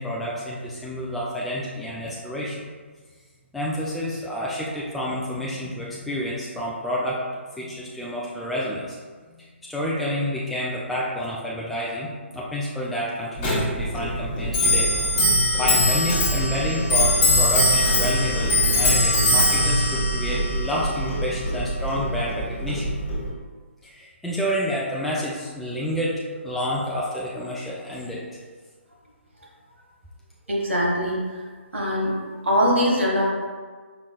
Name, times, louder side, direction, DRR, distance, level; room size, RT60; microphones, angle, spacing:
voice 1, 0.0-2.6 3.5-7.2 7.6-9.0 9.4-14.9 15.6-22.9 23.8-28.2, equal, ahead, -6 dB, 0.3 m, -29 dB
Clock, 13.4-23.3, left 1 dB, 25° left, 1.3 m, -21 dB
voice 2, 30.5-31.2 31.7-32.1 32.4-33.3, equal, 70° right, -2 dB, 1.2 m, -21 dB
4.9 x 3.5 x 2.2 m, 1.5 s
figure-of-eight pair, 140°, 7 cm